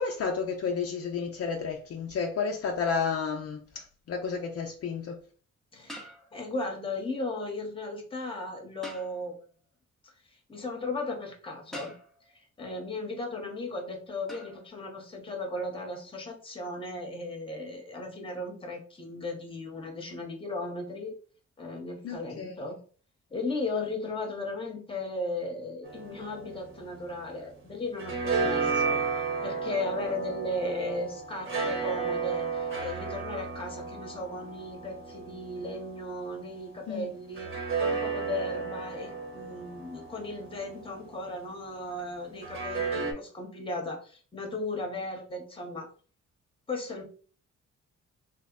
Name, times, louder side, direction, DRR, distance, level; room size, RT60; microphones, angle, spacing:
voice 1, 0.0-5.2 22.0-22.5 36.9-37.1, left 5 dB, 50° left, 0.5 m, -31 dB
voice 2, 5.7-9.4 10.0-10.1 10.5-11.9 12.3-21.1 21.6-22.8 23.3-45.9 46.7-47.0, left 2 dB, 20° left, 0.9 m, -36 dB
sound 1, 5.9-6.7 8.8-9.4 11.7-12.4 14.3-14.7, equal, ahead, 0.6 m, -46 dB
sound 2, 25.8-27.5 27.8-36.5 37.3-41.4 42.4-43.1, right 4 dB, 45° right, 1.0 m, -33 dB
3.2 x 2.0 x 3.7 m
cardioid pair, 115°, 30 cm